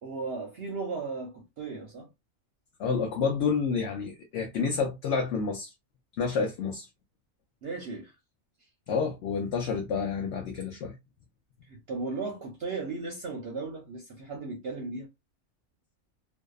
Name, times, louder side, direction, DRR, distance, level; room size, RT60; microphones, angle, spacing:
voice 1, 0.0-2.1 7.6-8.2 11.6-15.1, right 3 dB, 60° right, 0.7 m, -36 dB
voice 2, 2.8-5.7 6.2-6.9 8.9-11.0, left 5 dB, 65° left, 0.8 m, -29 dB
2.6 x 2.0 x 2.3 m
omnidirectional pair, 1.4 m